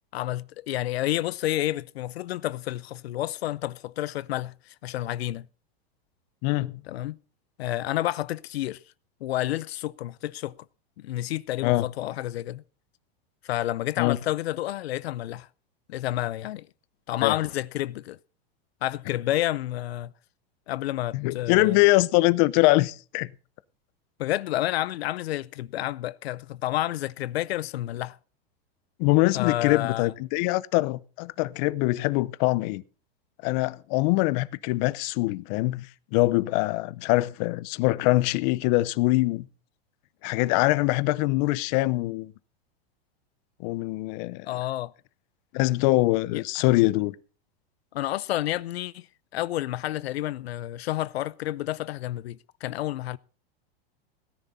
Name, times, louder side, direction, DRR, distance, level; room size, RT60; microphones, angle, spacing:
voice 1, 0.1-5.5 6.9-7.2 7.6-8.8 9.2-10.6 11.0-12.6 13.4-15.5 15.9-16.7 17.1-18.2 18.8-20.1 20.7-21.8 24.2-28.2 29.3-30.1 44.4-44.9 46.3-46.6 47.9-49.1 49.3-53.2, left 14 dB, 90° left, 0.6 m, -30 dB
voice 2, 6.4-6.8 11.6-11.9 14.0-14.2 17.2-17.3 21.1-23.3 29.0-32.8 33.4-35.9 36.1-39.5 40.2-42.3 43.6-44.5 45.5-47.1, left 20 dB, 45° left, 0.7 m, -23 dB
17.0 x 10.0 x 4.1 m
supercardioid pair, 135°, 31 cm